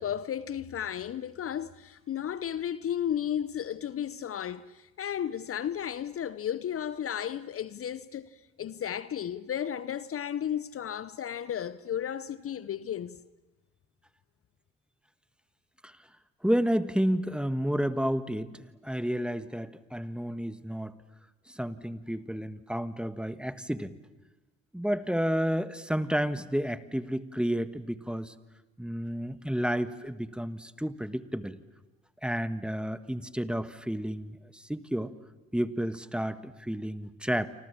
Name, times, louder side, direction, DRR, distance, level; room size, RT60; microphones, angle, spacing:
voice 1, 0.0-13.2, left 9 dB, 45° left, 0.8 m, -34 dB
voice 2, 16.4-21.0 21.5-24.0 24.7-28.3 28.8-31.6 32.2-35.1 35.5-37.5, equal, 5° right, 1.5 m, -31 dB
28.0 x 25.5 x 7.3 m
hypercardioid pair, 55°, 32 cm